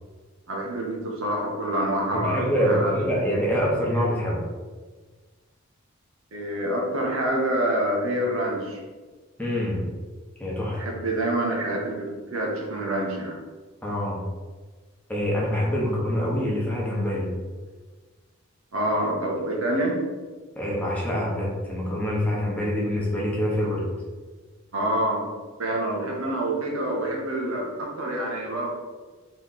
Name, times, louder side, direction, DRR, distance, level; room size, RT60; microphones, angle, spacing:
voice 1, 0.5-2.9 6.3-8.8 10.7-13.4 18.7-20.0 24.7-25.3 25.6-28.7, right 1 dB, 75° right, -1 dB, 1.0 m, -27 dB
voice 2, 2.1-4.4 9.4-9.9 10.4-10.8 13.8-14.2 15.1-17.3 20.6-23.8, equal, 5° left, -5 dB, 1.0 m, -25 dB
3.8 x 3.3 x 4.1 m, 1.4 s
head